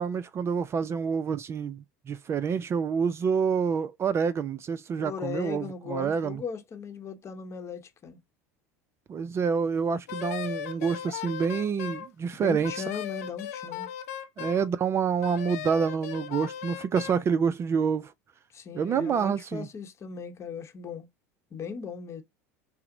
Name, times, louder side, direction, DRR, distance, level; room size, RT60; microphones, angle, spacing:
voice 1, 0.0-6.4 9.1-12.8 14.4-18.1 18.7-19.7, right 6 dB, 30° right, 0.4 m, -27 dB
voice 2, 5.0-8.2 12.4-13.9 18.5-21.1 21.5-22.2, left 6 dB, 35° left, 0.9 m, -38 dB
Wind instrument woodwind instrument, 10.1-12.1 12.6-14.7 15.2-17.2, left 10 dB, 75° left, 0.7 m, -37 dB
5.6 x 2.0 x 2.6 m
hypercardioid pair, 85°, 8 cm